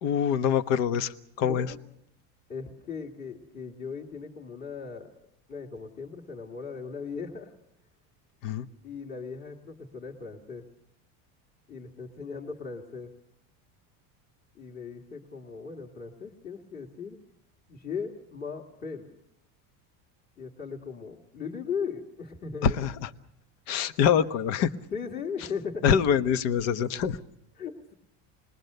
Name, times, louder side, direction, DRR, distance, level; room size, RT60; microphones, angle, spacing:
voice 1, 0.0-1.7 8.4-8.7 22.6-23.1 23.7-24.7 25.8-27.2, left 8 dB, 65° left, 12 dB, 1.3 m, -25 dB
voice 2, 1.4-1.8 2.5-5.1 5.5-7.5 8.8-10.6 11.7-13.1 14.6-17.2 17.7-19.2 20.4-22.8 24.9-26.0 27.6-27.9, left 5 dB, 20° left, 0 dB, 1.9 m, -38 dB
28.5 x 21.0 x 6.7 m, 0.73 s
cardioid pair, 165°, 41 cm